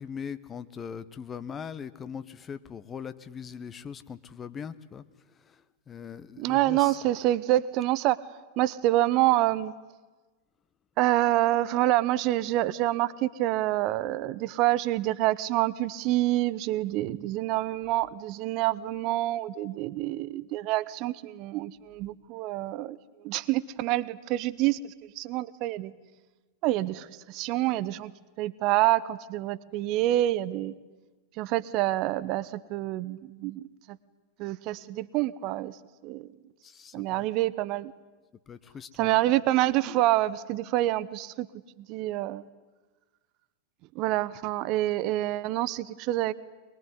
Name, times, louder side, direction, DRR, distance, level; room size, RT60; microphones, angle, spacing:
voice 1, 0.0-5.0 5.3-5.6 5.9-7.0 36.6-37.2 38.5-39.1, left 7 dB, 20° left, 13 dB, 1.0 m, -40 dB
voice 2, 6.4-8.2 8.6-9.7 11.0-25.9 26.6-28.1 28.4-30.7 31.4-34.0 34.4-35.8 36.0-36.3 36.9-37.9 39.0-41.5 41.8-42.4 43.9-46.3, right 15 dB, 40° right, 16 dB, 0.8 m, -27 dB
23.0 x 22.0 x 9.7 m, 1.2 s
figure-of-eight pair, 90°, 0 cm